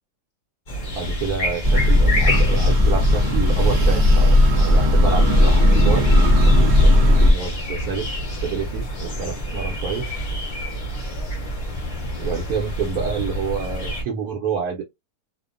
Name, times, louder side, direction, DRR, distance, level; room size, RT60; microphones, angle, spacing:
sound 1, 0.7-14.0, equal, 40° left, 0.6 m, -28 dB
voice 1, 1.0-6.1 6.4-8.1 8.4-10.1 12.2-14.8, right 5 dB, 70° right, 1.0 m, -28 dB
sound 2, 1.6-7.3, left 1 dB, 85° right, 0.4 m, -15 dB
2.8 x 2.1 x 2.4 m
omnidirectional pair, 1.9 m